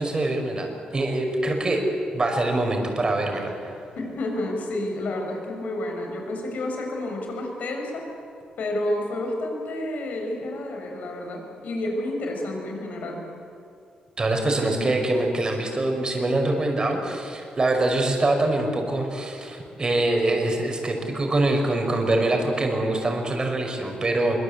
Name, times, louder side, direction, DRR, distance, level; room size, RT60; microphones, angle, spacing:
voice 1, 0.0-1.8 2.1-3.7 14.2-24.4, right 2 dB, 30° right, 3 dB, 5.6 m, -24 dB
voice 2, 3.9-8.1 8.6-13.2, left 1 dB, 75° left, 2 dB, 6.4 m, -30 dB
24.5 x 24.0 x 8.4 m, 2.6 s
cardioid pair, 95°, 3 cm